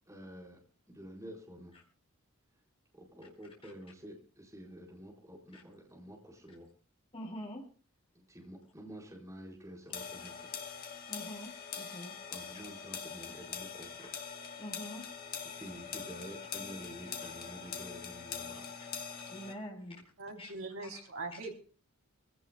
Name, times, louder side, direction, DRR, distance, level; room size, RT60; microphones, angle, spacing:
voice 1, 0.1-0.6 0.9-1.7 2.9-6.7 8.1-10.5 12.3-14.1 15.5-18.7, equal, 15° right, -3 dB, 4.5 m, -49 dB
voice 2, 7.1-7.6 11.1-12.2 14.6-15.1 19.3-20.0 20.4-20.5 20.8-20.9, equal, 25° left, -1 dB, 4.6 m, -45 dB
sound 1, 9.9-19.5, left 6 dB, 45° left, 1.9 m, -43 dB
voice 3, 20.2-21.5, right 3 dB, 65° right, 1 dB, 3.5 m, -42 dB
25.0 x 17.0 x 2.3 m, 0.40 s
head